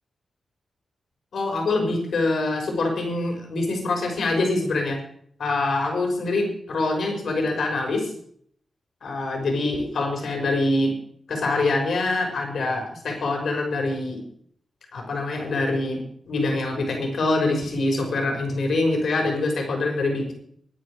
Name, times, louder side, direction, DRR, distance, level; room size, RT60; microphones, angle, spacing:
voice 1, 1.3-5.0 5.4-8.1 9.0-10.9 11.3-14.2 14.9-20.3, left 2 dB, 75° left, 2 dB, 6.0 m, -24 dB
24.0 x 9.6 x 5.0 m, 0.63 s
wide cardioid pair, 105°, 0 cm